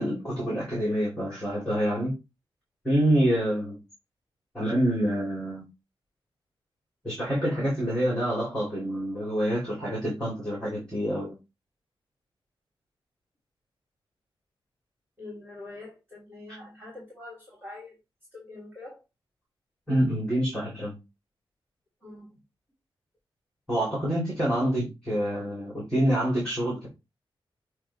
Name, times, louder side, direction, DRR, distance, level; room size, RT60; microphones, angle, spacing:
voice 1, 0.0-2.1 2.8-3.8 4.5-5.7 7.0-11.3 16.5-16.6 19.9-20.9 23.7-26.9, equal, 10° left, 3.2 m, -27 dB
voice 2, 15.2-18.0 18.3-19.0 22.0-22.4, left 2 dB, 15° right, 3.4 m, -44 dB
7.7 x 3.2 x 4.3 m
wide cardioid pair, 165°, 9 cm